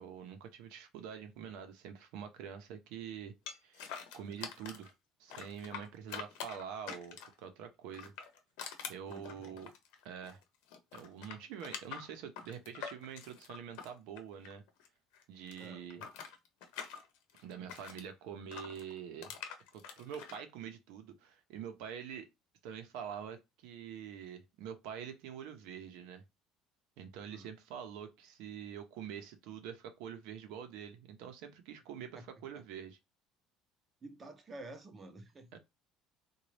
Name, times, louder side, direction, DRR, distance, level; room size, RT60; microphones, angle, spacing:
voice 1, 0.0-3.3 3.6-4.9 5.2-8.1 8.9-9.7 10.0-10.4 10.9-14.6 15.3-16.1 17.4-19.4 19.7-22.3 22.6-26.2 27.0-33.0 35.5-35.6, right 8 dB, 70° right, 0.6 m, -46 dB
sound 1, 3.5-4.9 5.3-7.4 7.9-10.4 10.7-14.9 15.1-18.1 18.5-20.4, left 7 dB, 85° left, 0.8 m, -46 dB
voice 2, 9.1-9.6 15.6-15.8 27.3-27.5 32.0-32.2 34.0-35.6, right 2 dB, 20° right, 0.6 m, -50 dB
3.9 x 2.2 x 3.2 m
cardioid pair, 180°, 0 cm